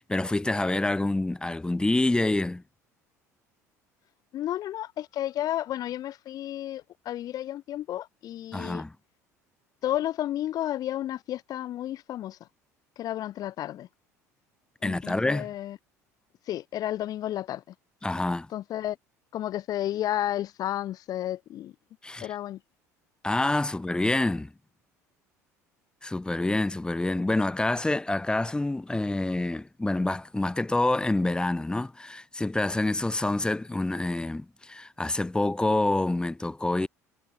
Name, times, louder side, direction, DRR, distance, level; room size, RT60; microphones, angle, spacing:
voice 1, 0.0-2.6 8.5-8.9 14.8-15.5 18.0-18.5 22.0-22.3 23.2-24.5 26.0-36.9, left 2 dB, 10° left, 3.8 m, -27 dB
voice 2, 4.3-8.8 9.8-12.4 13.0-13.9 14.8-15.8 16.5-17.7 18.5-19.0 19.3-21.7 22.2-22.6, left 12 dB, 45° left, 3.7 m, -32 dB
figure-of-eight pair, 65°, 9 cm